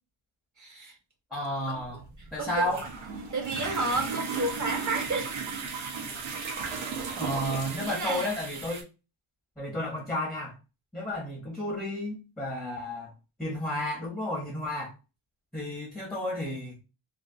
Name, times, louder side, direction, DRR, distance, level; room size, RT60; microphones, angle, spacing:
voice 1, 0.6-1.0 2.4-2.8 3.3-5.4 7.9-8.4, right 2 dB, 40° right, 0.8 m, -31 dB
voice 2, 1.3-2.0 2.3-2.8 7.2-8.9 9.6-10.5 10.9-13.1 13.4-14.9 15.5-16.8, left 1 dB, ahead, 0.5 m, -32 dB
sound 1, 1.8-8.8, right 5 dB, 85° right, 0.7 m, -35 dB
2.6 x 2.4 x 2.4 m
wide cardioid pair, 155°, 46 cm